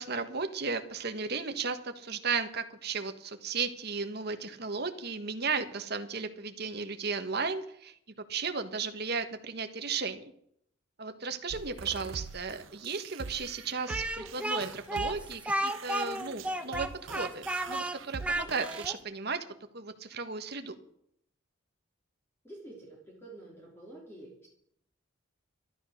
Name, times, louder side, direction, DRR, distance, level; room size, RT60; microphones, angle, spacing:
voice 1, 0.0-7.9 8.3-10.2 11.0-16.9 17.1-19.4 19.7-20.7, right 5 dB, 50° right, 8 dB, 1.4 m, -35 dB
sound 1, 11.5-18.9, right 5 dB, 70° right, 0.6 m, -44 dB
Speech, 13.9-19.0, right 1 dB, 5° right, 0.9 m, -33 dB
voice 2, 22.4-24.5, right 2 dB, 10° left, -3 dB, 3.2 m, -48 dB
12.5 x 11.5 x 6.5 m, 0.69 s
head